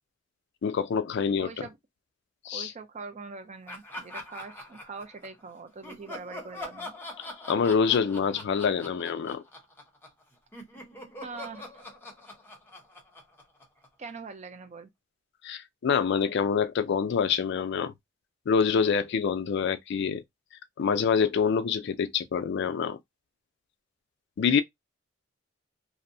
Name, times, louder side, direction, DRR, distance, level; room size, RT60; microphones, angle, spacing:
voice 1, 0.6-1.6 2.4-2.7 7.2-9.4 15.4-17.9 18.5-20.2 20.8-23.0 24.4-24.6, left 6 dB, 60° left, 0.3 m, -26 dB
voice 2, 1.4-1.8 2.5-6.9 11.2-11.8 14.0-14.9, right 4 dB, 35° right, 0.4 m, -42 dB
Laughter, 3.7-5.4 5.8-10.2 10.5-14.1, left 1 dB, 10° left, 0.6 m, -43 dB
2.6 x 2.0 x 2.6 m
head